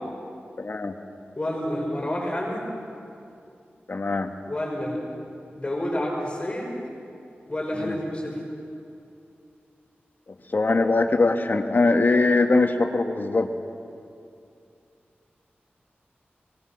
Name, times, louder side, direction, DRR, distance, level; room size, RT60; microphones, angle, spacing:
voice 1, 0.6-0.9 3.9-4.3 7.8-8.0 10.5-13.5, left 3 dB, 50° left, 5 dB, 1.5 m, -21 dB
voice 2, 1.4-2.7 4.5-5.0 5.6-6.7 7.4-8.4, left 1 dB, 30° left, -4 dB, 6.1 m, -29 dB
23.5 x 19.5 x 5.9 m, 2.5 s
wide cardioid pair, 80°, 4 cm